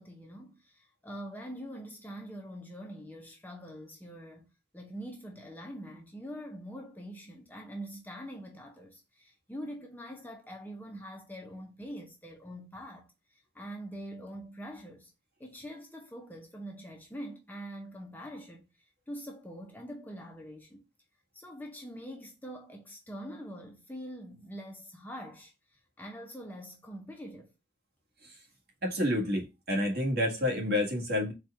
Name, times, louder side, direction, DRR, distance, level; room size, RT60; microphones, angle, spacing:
voice 1, 0.0-15.1 15.4-18.7 19.1-20.8 21.3-27.5, equal, 10° left, 0.6 m, -44 dB
voice 2, 28.8-31.3, left 1 dB, 55° right, 1.5 m, -29 dB
4.3 x 2.3 x 4.6 m
head